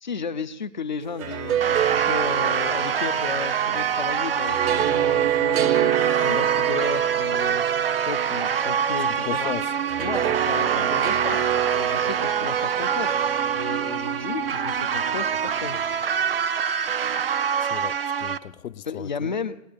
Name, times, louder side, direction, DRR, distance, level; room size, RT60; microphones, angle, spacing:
voice 1, 0.0-5.9 6.2-7.7 8.0-9.6 10.0-13.2 13.5-15.8 18.8-19.6, left 5 dB, 35° left, 0.5 m, -33 dB
sound 1, 1.0-16.2, right 10 dB, 90° right, 0.9 m, -27 dB
sound 2, 1.6-18.4, right 7 dB, 45° right, 0.4 m, -25 dB
voice 2, 9.2-9.7 17.6-19.3, left 11 dB, 90° left, 0.7 m, -35 dB
19.0 x 10.0 x 5.1 m
hypercardioid pair, 175°, 40 cm